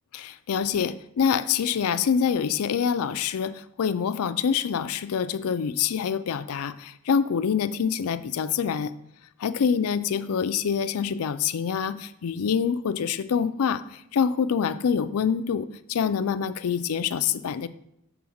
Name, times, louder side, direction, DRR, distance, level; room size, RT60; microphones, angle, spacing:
voice 1, 0.1-8.9 9.4-17.7, left 7 dB, 80° left, 13 dB, 0.4 m, -26 dB
7.1 x 3.5 x 6.3 m, 0.77 s
head